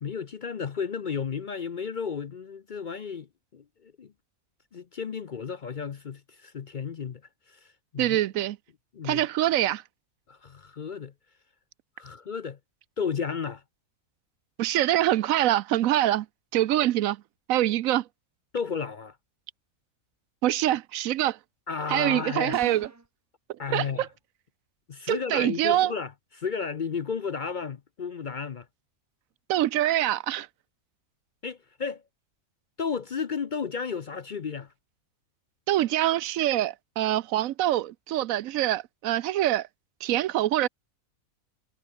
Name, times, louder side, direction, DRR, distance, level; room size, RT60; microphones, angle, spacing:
voice 1, 0.0-4.1 4.7-7.2 7.5-8.2 8.9-9.3 10.3-11.1 12.0-12.6 13.0-13.6 18.5-19.2 21.7-22.6 23.6-24.1 24.9-28.7 31.4-32.0 32.8-34.7, left 6 dB, 45° left, 0.7 m, -33 dB
voice 2, 8.0-8.6 9.0-9.8 14.6-16.3 16.5-17.2 17.5-18.0 20.4-21.4 21.9-22.9 23.7-23.8 25.1-25.9 29.5-30.5 35.7-39.7 40.0-40.7, right 13 dB, 80° right, 1.0 m, -24 dB
sound 1, 22.5-23.1, right 2 dB, 15° right, 0.7 m, -40 dB
omnidirectional pair, 1.4 m